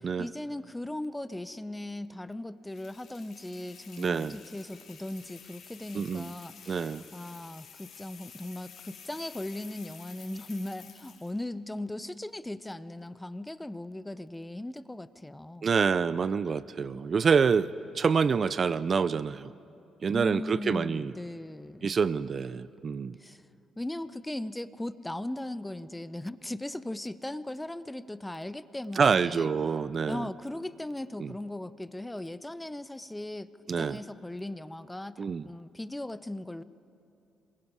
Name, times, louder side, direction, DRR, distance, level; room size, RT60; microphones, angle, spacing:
voice 1, 0.2-15.7 20.1-22.0 23.2-23.4 23.8-29.5 30.1-36.6, left 1 dB, 10° left, 15 dB, 0.6 m, -38 dB
sound 1, 2.7-11.4, left 7 dB, 65° left, 3.7 m, -51 dB
voice 2, 4.0-4.4 5.9-6.3 6.7-7.0 15.6-19.5 20.0-21.1 21.8-23.2 29.0-30.2 31.2-31.3 33.7-34.0 35.2-35.4, right 6 dB, 45° right, 17 dB, 0.4 m, -27 dB
27.5 x 22.0 x 4.9 m, 2.8 s
cardioid pair, 90°, 0 cm